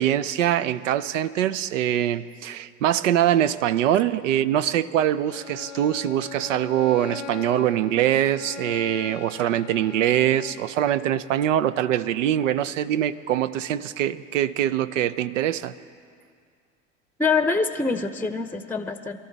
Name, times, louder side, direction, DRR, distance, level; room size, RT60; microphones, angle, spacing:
voice 1, 0.0-15.7, right 11 dB, 80° right, 13 dB, 0.6 m, -23 dB
Bowed string instrument, 5.3-10.7, left 6 dB, 85° left, 1.1 m, -40 dB
voice 2, 17.2-19.2, left 4 dB, 5° left, 9 dB, 0.7 m, -24 dB
23.5 x 13.5 x 4.0 m, 2.2 s
hypercardioid pair, 80°, 37 cm